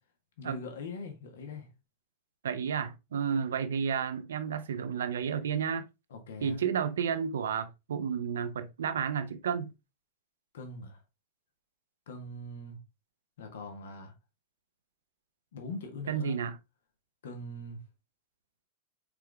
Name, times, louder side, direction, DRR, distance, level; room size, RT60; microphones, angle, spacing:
voice 1, 0.4-1.7 6.1-6.6 10.5-11.0 12.1-12.8 13.4-14.1 15.5-16.4 17.2-17.8, left 2 dB, 60° left, 1.6 m, -42 dB
voice 2, 2.4-5.9 6.4-9.7 16.1-16.6, right 7 dB, 65° right, 0.7 m, -31 dB
6.0 x 4.7 x 3.5 m
figure-of-eight pair, 90°, 0 cm